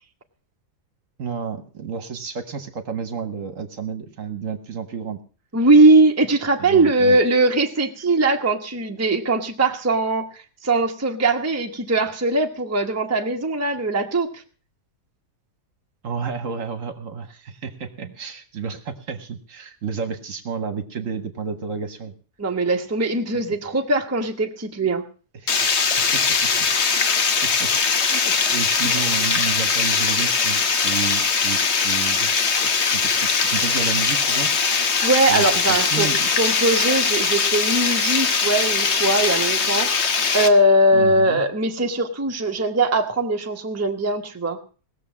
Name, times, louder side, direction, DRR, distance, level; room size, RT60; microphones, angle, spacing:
voice 1, 1.2-5.2 6.6-7.2 16.0-22.1 25.3-25.7 26.1-26.2 26.6-28.2 28.5-32.3 32.8-34.5 35.3-36.3 40.9-41.4, right 6 dB, 55° right, 10 dB, 1.5 m, -31 dB
voice 2, 5.5-14.3 22.4-25.0 28.1-28.2 35.0-36.1 36.4-39.9 40.3-44.6, right 2 dB, 10° right, 4 dB, 0.9 m, -20 dB
Water, 25.5-40.5, left 5 dB, 45° left, 1.2 m, -21 dB
18.0 x 6.9 x 7.2 m, 0.39 s
omnidirectional pair, 1.7 m